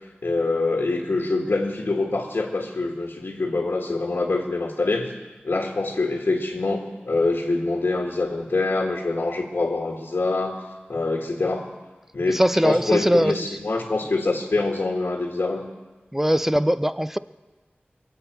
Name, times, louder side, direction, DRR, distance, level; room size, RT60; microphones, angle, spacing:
voice 1, 0.2-5.1 5.4-10.6 10.9-11.7 12.1-15.7, left 3 dB, 70° left, 1 dB, 1.6 m, -25 dB
voice 2, 12.3-13.6 16.1-17.2, equal, 10° right, 13 dB, 0.5 m, -21 dB
22.5 x 8.0 x 7.9 m, 1.3 s
wide cardioid pair, 45°, 4 cm